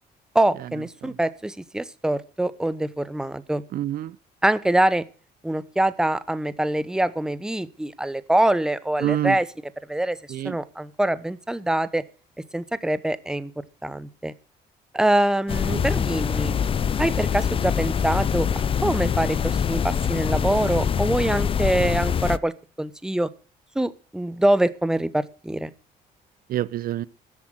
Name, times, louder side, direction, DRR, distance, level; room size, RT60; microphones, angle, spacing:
voice 1, 0.3-3.6 4.4-5.0 5.4-9.5 9.9-10.2 10.4-12.0 12.5-13.5 13.8-14.3 14.9-16.5 17.0-18.5 18.8-22.5 22.8-23.3 23.7-25.7, right 1 dB, 5° right, 0.8 m, -24 dB
voice 2, 3.7-4.1 9.0-9.4 10.3-10.5 15.7-15.8 16.4-16.5 26.5-27.0, right 12 dB, 60° right, 0.6 m, -26 dB
sound 1, 15.5-22.4, left 7 dB, 30° left, 0.5 m, -24 dB
13.5 x 8.1 x 6.2 m
cardioid pair, 110°, 17 cm